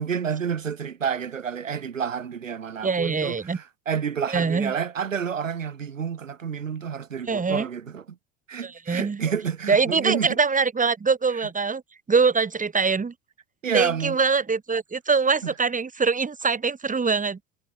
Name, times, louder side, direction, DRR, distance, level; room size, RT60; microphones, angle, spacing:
voice 1, 0.0-8.2 8.5-10.4 13.6-14.2 15.4-15.5, right 7 dB, 90° right, 3.5 m, -29 dB
voice 2, 2.8-3.6 4.3-4.7 7.3-7.7 8.6-9.2 9.7-11.8 12.1-13.1 13.7-17.4, right 5 dB, 20° right, 4.5 m, -23 dB
hypercardioid pair, 75°, 38 cm